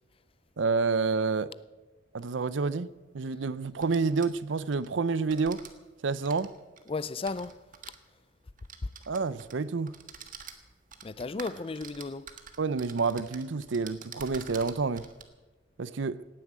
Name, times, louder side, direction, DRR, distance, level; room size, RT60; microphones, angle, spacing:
voice 1, 0.6-1.5 2.1-2.9 3.1-5.6 6.0-6.5 9.1-9.9 12.6-15.0 15.8-16.2, right 4 dB, 65° right, 0.6 m, -29 dB
sound 1, 2.2-2.3 3.7-4.9 5.2-5.7 6.1-8.0 8.6-9.6 9.9-15.2, right 7 dB, 45° right, 1.5 m, -47 dB
voice 2, 6.9-7.6 8.8-8.9 11.0-12.3, left 3 dB, 30° left, 0.4 m, -34 dB
17.5 x 9.7 x 8.2 m
head